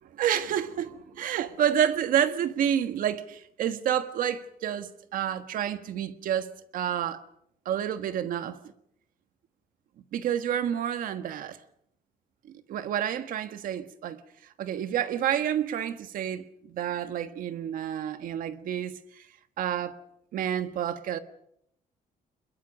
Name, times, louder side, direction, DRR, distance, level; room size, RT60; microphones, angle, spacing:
voice 1, 0.0-7.2 7.6-8.6 10.1-11.6 12.5-14.2 14.6-19.3 19.6-20.0 20.3-21.2, right 9 dB, 70° right, 1.5 m, -29 dB
24.0 x 22.0 x 6.4 m
cardioid pair, 175°, 15 cm